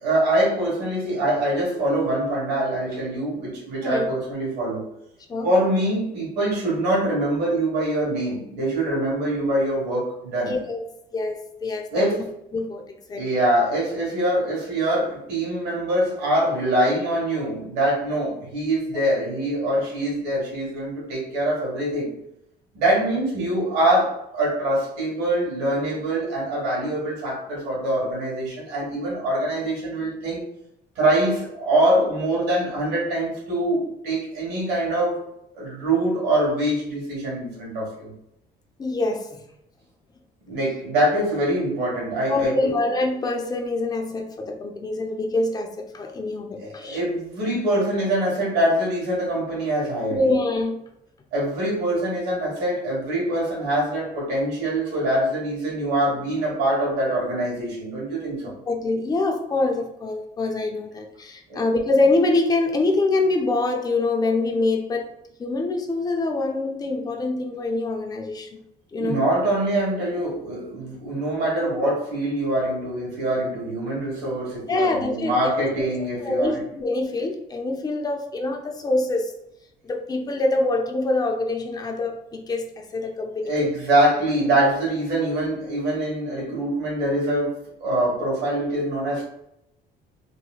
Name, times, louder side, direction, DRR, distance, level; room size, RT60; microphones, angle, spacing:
voice 1, 0.0-4.8 5.4-10.5 11.9-12.2 13.1-22.1 22.7-30.4 30.9-35.2 35.5-38.1 40.5-42.8 46.6-50.3 51.3-58.5 61.5-61.7 69.0-76.6 83.4-89.2, right 1 dB, 90° right, -5 dB, 1.5 m, -24 dB
voice 2, 10.4-10.8 11.1-12.0 12.5-13.4 38.8-39.4 42.3-47.0 50.1-50.8 58.7-65.1 65.4-68.6 68.9-69.2 74.7-75.9 76.2-79.3 79.8-83.7, left 2 dB, 20° left, 2 dB, 0.5 m, -25 dB
2.9 x 2.8 x 2.3 m, 0.79 s
cardioid pair, 110°, 17 cm